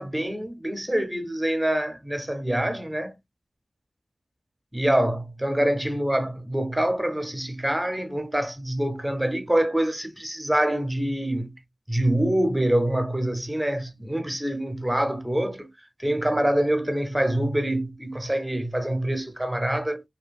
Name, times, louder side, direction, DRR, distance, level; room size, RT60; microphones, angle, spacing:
voice 1, 0.0-3.2 4.7-11.5 11.9-15.7 16.0-20.0, right 1 dB, 15° right, 0.6 m, -25 dB
2.7 x 2.5 x 2.3 m
wide cardioid pair, 70°, 0 cm